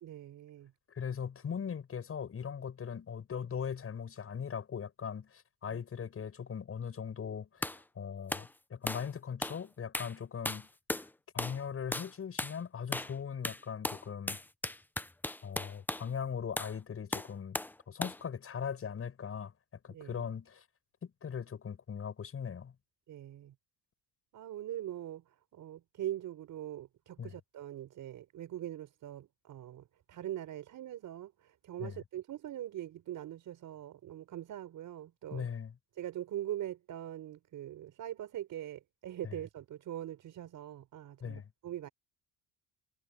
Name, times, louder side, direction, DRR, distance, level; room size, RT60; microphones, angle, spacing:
voice 1, 0.0-0.7 5.7-5.8 19.9-20.3 23.1-23.5 24.3-25.2 25.5-35.5 35.9-41.9, right 12 dB, 55° right, 4.3 m, -42 dB
voice 2, 0.9-10.7 11.3-14.4 15.4-17.6 17.9-19.5 19.8-20.6 21.0-22.7 27.2-27.4 31.8-32.0 35.3-35.8 39.2-39.4 41.2-41.5, left 7 dB, 40° left, 7.5 m, -39 dB
sound 1, 7.6-7.8 8.3-8.5 8.9-9.1 9.4-9.6 9.9-10.2 10.5-11.1 11.4-11.6 11.9-12.1 12.4-12.6 12.9-13.2 13.4-16.1 16.6-16.8 17.1-17.8 18.0-18.2, left 1 dB, 5° left, 0.7 m, -37 dB
cardioid pair, 105°, 36 cm